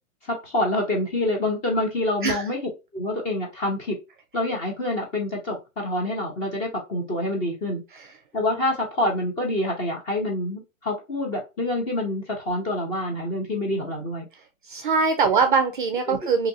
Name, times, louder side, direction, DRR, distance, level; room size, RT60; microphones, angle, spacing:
voice 1, 0.2-2.6 2.9-4.0 4.3-7.8 8.3-14.3 16.1-16.2, left 1 dB, 15° left, 0 dB, 0.6 m, -26 dB
voice 2, 14.7-16.5, right 5 dB, 40° right, 7 dB, 0.4 m, -22 dB
2.7 x 2.5 x 3.9 m, 0.26 s
hypercardioid pair, 150°, 42 cm